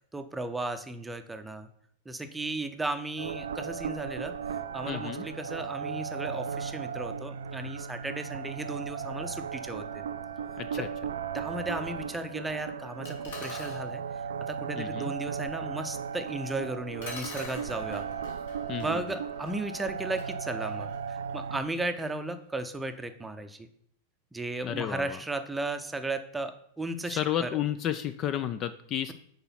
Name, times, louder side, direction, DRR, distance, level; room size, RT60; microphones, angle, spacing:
voice 1, 0.1-1.7 2.1-4.3 4.7-10.0 10.8-10.9 11.3-14.0 14.5-18.0 18.8-23.7 24.3-27.6, right 2 dB, 10° right, 8 dB, 0.7 m, -35 dB
sound 1, 3.2-21.6, right 7 dB, 65° right, 0.4 m, -36 dB
voice 2, 4.9-5.2 10.6-10.9 14.8-15.1 18.7-19.0 24.6-25.2 27.2-29.1, left 11 dB, 35° left, 11 dB, 0.4 m, -32 dB
sound 2, 13.1-13.8 16.4-16.5 17.0-21.8, left 3 dB, 60° left, 2.3 m, -46 dB
6.8 x 4.8 x 5.6 m, 0.67 s
figure-of-eight pair, 90°, 0 cm